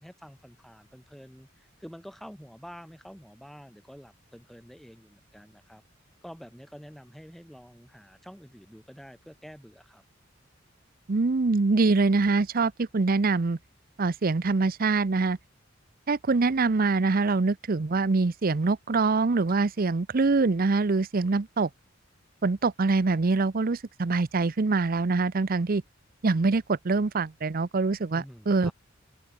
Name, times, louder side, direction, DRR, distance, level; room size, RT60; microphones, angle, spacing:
voice 1, 0.0-5.8 6.2-10.0 28.1-28.7, equal, ahead, 3.8 m, -48 dB
voice 2, 11.1-13.6 14.0-15.4 16.1-21.7 22.4-25.8 26.2-28.7, right 3 dB, 45° right, 0.6 m, -24 dB
open air
head